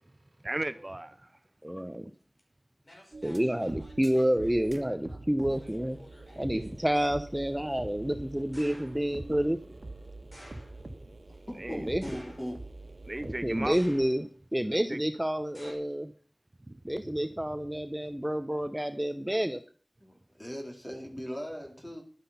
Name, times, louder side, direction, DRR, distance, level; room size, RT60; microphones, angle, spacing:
voice 1, 0.4-1.4 9.7-9.8 11.6-11.8 13.0-13.8 14.7-15.0 16.7-16.8, right 1 dB, 40° right, 0.6 m, -36 dB
voice 2, 1.6-2.1 3.2-6.0 6.4-9.6 11.7-12.0 13.2-16.1 16.8-19.6, equal, 10° right, 0.8 m, -29 dB
sound 1, 2.4-2.5 2.8-4.8 5.5-7.1 8.5-9.1 10.3-10.9 12.0-12.8 13.7-14.4 15.5-15.7, left 1 dB, 50° left, 5.2 m, -53 dB
sound 2, 3.1-14.1, right 2 dB, 75° right, 1.5 m, -45 dB
voice 3, 4.7-5.2 5.8-5.9 11.3-12.6 20.0-22.0, equal, 20° left, 3.7 m, -40 dB
12.0 x 9.7 x 5.7 m
wide cardioid pair, 60°, 0 cm